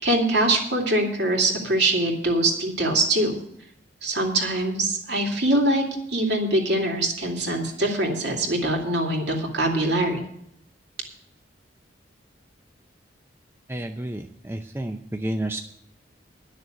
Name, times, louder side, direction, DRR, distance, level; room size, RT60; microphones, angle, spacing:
voice 1, 0.0-3.4 4.0-5.8 6.1-10.2, right 1 dB, 60° right, 1 dB, 2.5 m, -23 dB
voice 2, 13.7-15.6, right 1 dB, 10° right, 5 dB, 0.5 m, -30 dB
10.5 x 6.6 x 9.2 m, 0.72 s
head